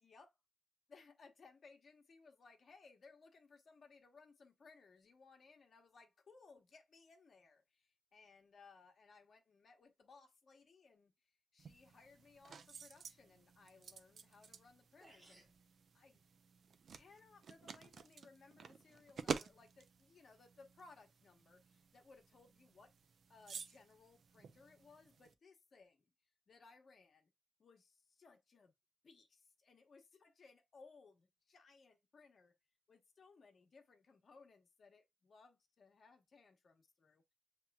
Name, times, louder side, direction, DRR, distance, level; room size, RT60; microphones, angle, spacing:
voice 1, 0.0-0.4 0.9-15.4 15.9-16.2 16.9-22.9 23.3-26.1 26.5-27.3 27.6-28.7 29.0-32.5 32.9-37.2, left 4 dB, 55° left, 1.0 m, -64 dB
sound 1, 11.6-25.3, right 6 dB, 65° right, 0.5 m, -51 dB
sound 2, 15.0-15.6, right 2 dB, 25° right, 0.9 m, -63 dB
7.3 x 3.0 x 2.2 m
wide cardioid pair, 135°, 0 cm